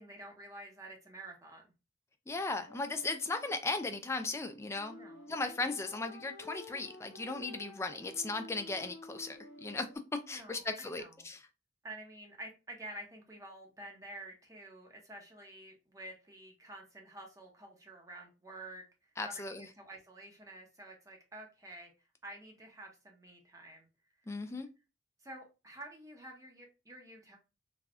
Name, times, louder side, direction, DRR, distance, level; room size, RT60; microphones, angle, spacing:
voice 1, 0.0-1.7 4.9-5.3 10.3-11.1 11.8-21.9 22.2-23.9 24.3-24.6 25.2-27.4, right 1 dB, 15° right, 0.7 m, -50 dB
voice 2, 2.3-5.0 5.3-11.4 19.2-19.7 24.3-24.7, left 3 dB, 15° left, 0.3 m, -37 dB
sound 1, 2.7-10.0, left 2 dB, 65° left, 0.6 m, -52 dB
3.4 x 2.2 x 2.4 m
head